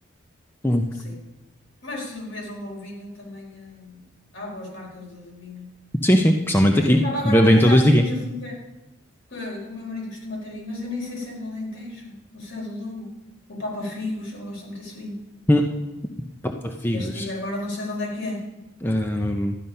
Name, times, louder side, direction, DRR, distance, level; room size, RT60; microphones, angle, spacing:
voice 1, 1.8-4.0 4.3-5.7 6.7-8.6 9.3-13.1 13.5-15.2 16.9-18.4, left 1 dB, 65° left, -1 dB, 4.4 m, -33 dB
voice 2, 6.0-7.0 7.2-8.0 15.5-15.7 16.4-17.3 18.8-19.6, equal, 10° left, 3 dB, 0.7 m, -18 dB
12.5 x 10.5 x 5.6 m, 1.0 s
head